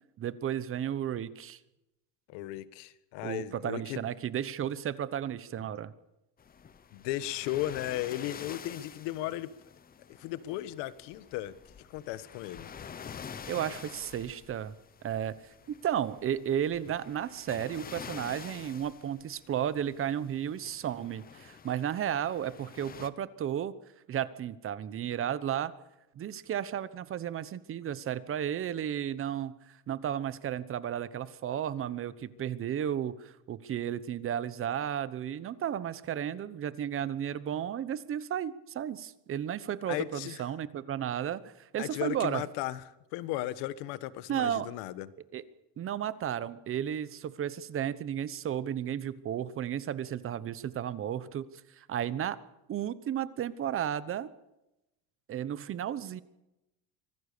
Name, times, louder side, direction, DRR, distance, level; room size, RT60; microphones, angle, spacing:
voice 1, 0.2-1.6 3.2-5.9 13.5-14.7 15.0-15.3 15.8-23.7 24.1-25.7 26.1-42.4 44.3-44.7 45.3-45.4 45.8-51.5 51.8-52.4 52.7-54.3 55.3-56.2, right 10 dB, 30° right, 16 dB, 1.0 m, -33 dB
voice 2, 2.3-4.0 6.9-9.5 10.1-11.5 11.9-12.7 39.9-40.4 41.8-42.8 43.1-45.1, left 14 dB, 80° left, 15 dB, 1.4 m, -35 dB
sound 1, 6.4-23.1, left 7 dB, 20° left, 0.9 m, -48 dB
25.0 x 18.0 x 6.8 m, 0.92 s
cardioid pair, 155°, 41 cm